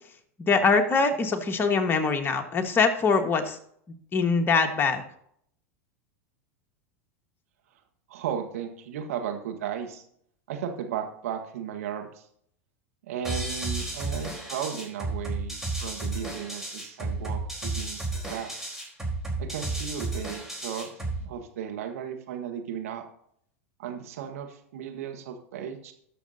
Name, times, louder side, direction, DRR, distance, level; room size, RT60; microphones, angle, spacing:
voice 1, 0.4-3.6 4.1-5.0, left 4 dB, 25° left, 5 dB, 1.5 m, -23 dB
voice 2, 8.1-10.0 10.5-12.3 13.0-18.5 19.4-20.9 21.2-23.0 23.8-25.9, right 8 dB, 75° right, 5 dB, 1.6 m, -35 dB
sound 1, 13.2-21.2, right 2 dB, 5° right, 4.0 m, -32 dB
19.5 x 6.6 x 2.8 m, 0.69 s
hypercardioid pair, 100°, 8 cm